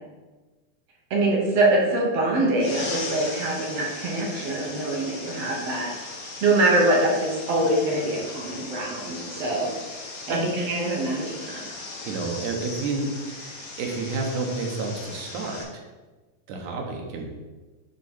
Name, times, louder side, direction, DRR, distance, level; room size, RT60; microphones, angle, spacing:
voice 1, 1.1-5.9 6.4-9.7 10.3-11.7, right 2 dB, 60° right, -2 dB, 2.0 m, -24 dB
sound 1, 2.6-15.6, left 3 dB, 75° left, 0.7 m, -38 dB
voice 2, 12.0-15.8 16.5-17.3, right 3 dB, 75° right, 1 dB, 2.5 m, -30 dB
9.9 x 3.7 x 4.3 m, 1.2 s
omnidirectional pair, 3.6 m